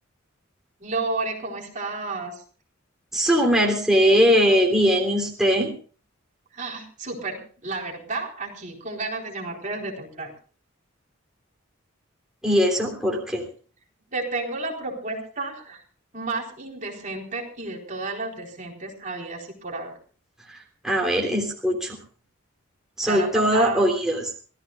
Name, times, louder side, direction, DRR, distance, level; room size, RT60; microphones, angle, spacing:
voice 1, 0.8-2.4 6.5-10.3 14.1-15.8 16.1-20.0 23.1-23.9, right 3 dB, 40° right, 0 dB, 4.1 m, -32 dB
voice 2, 3.1-5.7 12.4-13.4 20.5-22.0 23.0-24.3, equal, 5° right, -1 dB, 3.3 m, -21 dB
26.0 x 16.5 x 2.4 m, 0.40 s
head